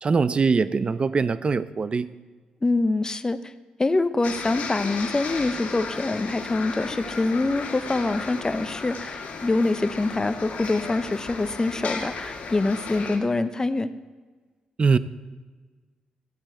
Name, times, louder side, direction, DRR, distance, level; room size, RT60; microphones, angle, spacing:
voice 1, 0.0-2.1 14.8-15.0, right 4 dB, 40° right, 16 dB, 0.5 m, -22 dB
voice 2, 2.6-3.4 3.8-13.9, left 2 dB, 25° left, 12 dB, 0.7 m, -25 dB
sound 1, 4.2-13.2, left 4 dB, 65° left, 1.7 m, -35 dB
13.0 x 8.9 x 4.4 m, 1.4 s
supercardioid pair, 60°, 3 cm